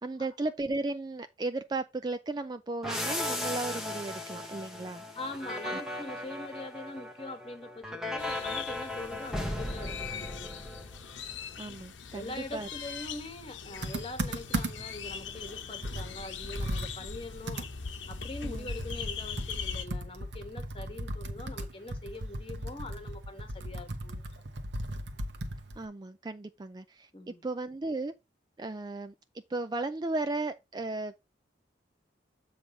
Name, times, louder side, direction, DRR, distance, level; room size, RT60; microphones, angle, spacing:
voice 1, 0.0-5.0 11.6-12.7 18.4-18.7 25.8-28.1 28.6-29.1 29.5-31.2, right 2 dB, 20° right, 0.3 m, -35 dB
sound 1, 2.8-11.3, left 1 dB, ahead, 0.9 m, -37 dB
voice 2, 5.1-10.5 12.1-17.7 18.1-24.5 27.1-27.4, left 2 dB, 30° left, 1.3 m, -43 dB
sound 2, 8.2-19.9, left 6 dB, 80° left, 0.9 m, -41 dB
Computer keyboard, 13.8-15.0 15.4-15.5 15.8-19.1 19.4-25.9, right 1 dB, 70° right, 1.0 m, -37 dB
7.8 x 3.4 x 5.3 m
head